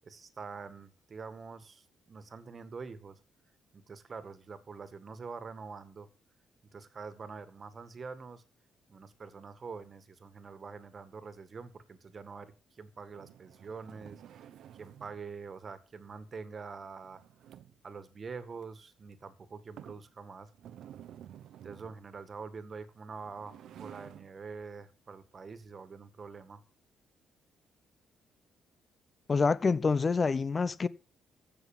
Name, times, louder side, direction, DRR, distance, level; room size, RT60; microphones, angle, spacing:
voice 1, 0.0-3.2 3.7-6.1 6.7-8.4 8.9-14.2 14.7-17.2 17.8-20.5 21.6-26.6, right 5 dB, 40° right, 1.8 m, -45 dB
sound 1, 13.1-15.2 17.0-17.9 18.6-18.7 19.1-19.2 19.8-20.1 20.5-22.0 23.1-24.3, right 10 dB, 75° right, 0.8 m, -51 dB
voice 2, 29.3-30.9, left 4 dB, 35° left, 0.7 m, -27 dB
15.0 x 6.1 x 7.3 m
cardioid pair, 90°, 0 cm